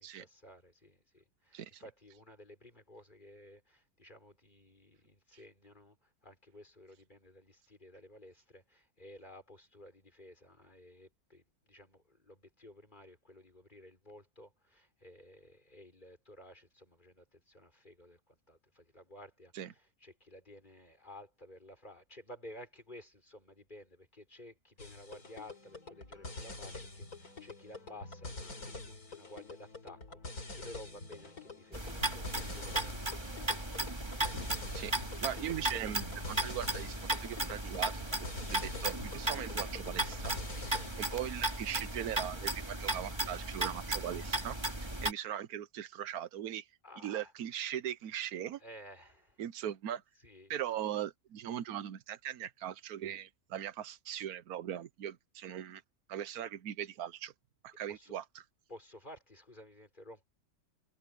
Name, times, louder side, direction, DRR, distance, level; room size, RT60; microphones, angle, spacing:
voice 1, 0.0-33.7 46.8-47.3 48.6-49.4 50.2-50.5 57.9-58.1 58.7-60.2, left 1 dB, 30° left, 5.5 m, -54 dB
sound 1, 24.8-41.3, left 2 dB, 85° left, 4.7 m, -46 dB
sound 2, 31.7-45.1, right 2 dB, 20° right, 2.4 m, -36 dB
voice 2, 35.2-46.7 47.0-48.6 49.4-50.0 50.5-55.8 56.1-57.3 57.6-58.4, right 10 dB, 85° right, 1.3 m, -40 dB
omnidirectional pair, 1.5 m